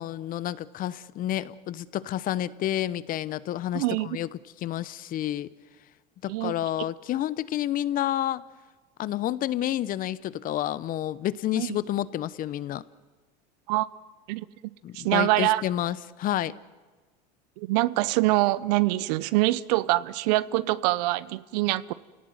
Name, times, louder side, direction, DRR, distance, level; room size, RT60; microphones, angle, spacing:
voice 1, 0.0-4.3 4.6-5.5 6.2-8.4 9.0-12.8 14.8-16.5, left 12 dB, 40° left, 0.9 m, -29 dB
voice 2, 3.7-4.2 6.3-6.5 11.6-11.8 13.7-13.9 14.3-14.5 14.9-15.6 17.6-21.9, right 18 dB, 75° right, 0.9 m, -24 dB
29.5 x 18.0 x 9.6 m
supercardioid pair, 120°, 21 cm